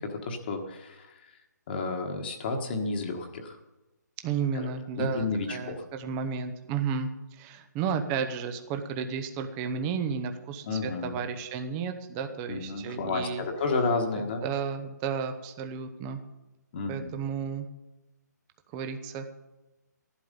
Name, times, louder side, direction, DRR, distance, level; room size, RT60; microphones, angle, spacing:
voice 1, 0.2-1.1 1.7-3.6 4.5-4.7 5.0-5.7 10.7-11.2 12.5-14.4 16.7-17.1, left 3 dB, 35° left, 3 dB, 1.5 m, -31 dB
voice 2, 4.2-13.4 14.1-16.2 16.9-17.7 18.7-19.3, right 6 dB, 15° right, 7 dB, 0.8 m, -33 dB
14.5 x 11.5 x 5.3 m, 1.0 s
hypercardioid pair, 160°, 10 cm